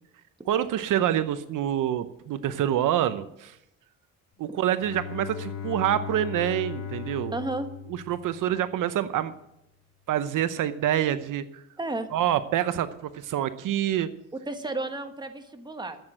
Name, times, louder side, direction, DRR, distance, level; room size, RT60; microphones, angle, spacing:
voice 1, 0.5-3.6 4.4-7.4 7.9-9.3 10.1-11.6 12.1-14.1, right 11 dB, 65° right, 12 dB, 0.8 m, -26 dB
Bowed string instrument, 4.8-8.7, left 7 dB, 65° left, 3.9 m, -37 dB
voice 2, 7.3-7.7 11.8-12.1 14.4-16.0, right 2 dB, 10° right, 6 dB, 1.4 m, -32 dB
14.0 x 8.0 x 7.6 m, 0.83 s
cardioid pair, 110°, 34 cm